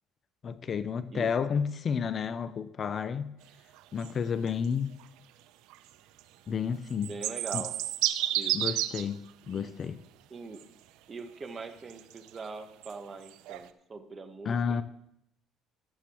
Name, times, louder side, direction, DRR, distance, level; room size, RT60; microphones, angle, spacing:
voice 1, 0.4-3.3 3.9-5.0 6.5-7.1 7.5-7.6 8.5-10.0 14.4-14.8, left 6 dB, 40° left, 0.5 m, -31 dB
sound 1, 3.8-4.1 4.5-4.7 5.0-5.1 5.7-5.8 6.2-6.3 6.9-9.1 9.5-9.6 10.6-10.7 11.6-12.9 13.2-13.7, right 13 dB, 85° right, 0.6 m, -31 dB
voice 2, 7.0-7.7 8.3-8.5 9.5-9.7 10.3-10.6 11.1-14.8, right 4 dB, 30° right, 1.1 m, -42 dB
13.5 x 11.5 x 3.0 m
cardioid pair, 120°, 0 cm